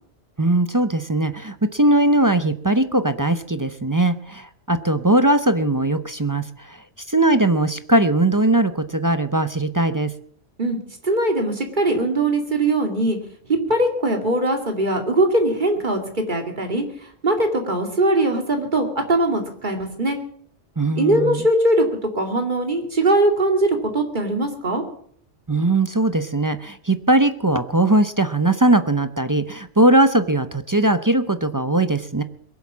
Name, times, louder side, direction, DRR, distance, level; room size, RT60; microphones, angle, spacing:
voice 1, 0.4-6.8 7.1-10.1 20.8-21.5 25.5-32.2, right 2 dB, 25° right, 11 dB, 0.5 m, -19 dB
voice 2, 10.6-13.2 13.7-16.8 17.2-20.2 21.0-21.9 22.1-24.8, right 1 dB, 40° right, 4 dB, 2.6 m, -21 dB
22.0 x 7.9 x 7.3 m, 0.62 s
omnidirectional pair, 1.2 m